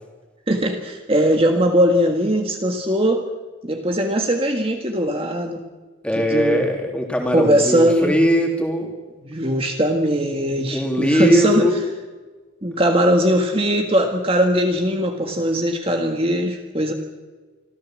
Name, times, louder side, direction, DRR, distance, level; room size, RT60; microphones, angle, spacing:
voice 1, 0.5-3.2 3.6-5.6 6.2-6.7 7.3-8.1 9.2-11.7 12.6-16.9, equal, 30° right, 3 dB, 1.7 m, -20 dB
voice 2, 6.0-8.9 10.7-11.8, equal, 5° left, 2 dB, 3.2 m, -20 dB
26.0 x 15.0 x 7.6 m, 1.3 s
head